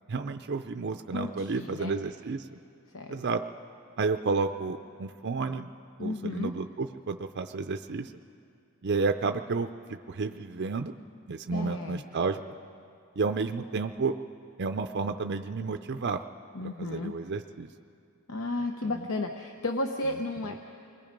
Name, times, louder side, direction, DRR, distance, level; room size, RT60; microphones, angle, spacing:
voice 1, 0.1-2.5 3.1-3.4 4.0-5.7 6.0-8.1 8.8-10.9 11.3-12.4 13.2-14.1 14.6-16.2 16.8-17.7 18.8-18.9, right 4 dB, 55° right, 7 dB, 0.5 m, -31 dB
voice 2, 1.1-1.9 2.9-3.2 6.0-6.6 11.5-12.0 16.5-17.1 18.3-20.6, left 2 dB, 70° left, 4 dB, 0.9 m, -33 dB
28.0 x 21.0 x 5.2 m, 2.5 s
head